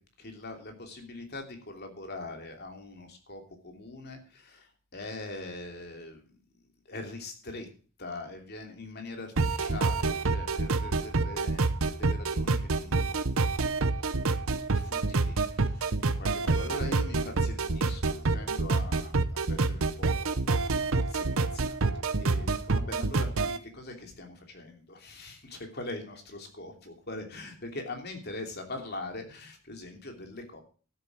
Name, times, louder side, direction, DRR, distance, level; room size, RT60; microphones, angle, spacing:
voice 1, 0.2-6.4 6.9-7.7 8.0-13.2 14.4-20.4 20.7-21.8 22.1-30.6, left 2 dB, 50° left, 4 dB, 3.0 m, -42 dB
sound 1, 9.4-23.6, right 3 dB, 70° right, 0.9 m, -27 dB
12.5 x 7.9 x 6.0 m, 0.38 s
head